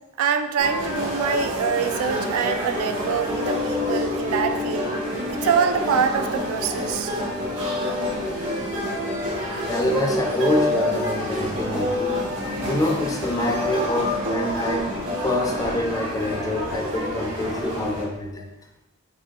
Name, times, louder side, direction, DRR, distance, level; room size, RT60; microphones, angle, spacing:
voice 1, 0.2-4.9 5.3-7.1, right 7 dB, 90° right, 8 dB, 0.3 m, -24 dB
sound 1, 0.6-18.0, left 1 dB, 60° right, 1.5 m, -27 dB
voice 2, 9.7-12.2 12.7-14.9 15.2-18.5, left 1 dB, 15° left, 2 dB, 0.3 m, -26 dB
4.9 x 2.3 x 2.8 m, 1.0 s
head